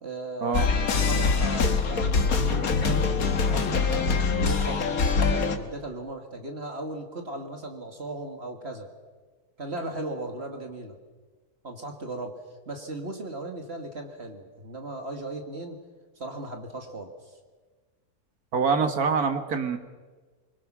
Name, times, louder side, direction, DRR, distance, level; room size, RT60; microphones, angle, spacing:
voice 1, 0.0-8.9 9.6-11.0 11.6-15.8 16.2-17.1, right 2 dB, 45° right, 4 dB, 2.2 m, -37 dB
sound 1, 0.5-5.6, left 4 dB, 70° left, 1.9 m, -24 dB
voice 2, 18.5-19.8, right 5 dB, 75° right, 7 dB, 2.1 m, -25 dB
24.5 x 22.5 x 6.2 m, 1.4 s
omnidirectional pair, 1.6 m